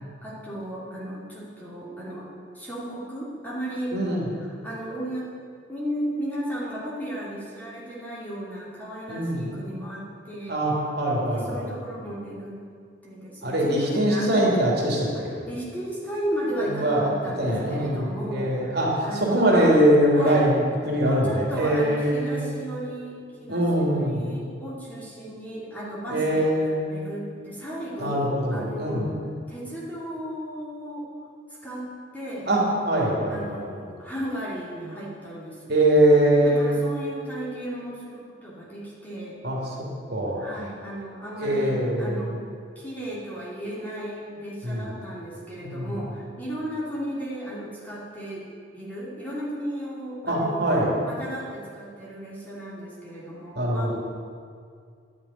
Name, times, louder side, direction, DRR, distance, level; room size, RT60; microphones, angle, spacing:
voice 1, 0.2-4.0 4.4-5.3 5.7-10.6 11.3-12.6 13.0-14.5 15.1-18.8 19.0-19.5 20.1-20.4 21.0-26.5 26.9-29.0 29.5-31.1 31.6-31.8 32.1-32.5 33.3-35.9 36.4-39.3 40.3-42.3 42.8-48.4 48.7-50.6 51.0-54.0, right 1 dB, 10° left, -7 dB, 2.8 m, -35 dB
voice 2, 3.9-4.2 9.1-9.5 10.5-11.7 13.4-15.3 16.6-22.5 23.5-24.3 26.1-26.9 28.0-29.1 32.5-33.6 35.7-36.8 39.4-39.6 40.1-40.4 41.4-42.2 44.6-44.9 45.6-45.9 50.2-50.9 53.5-54.0, right 1 dB, 55° right, -3 dB, 3.0 m, -22 dB
11.0 x 7.5 x 9.4 m, 2.3 s
head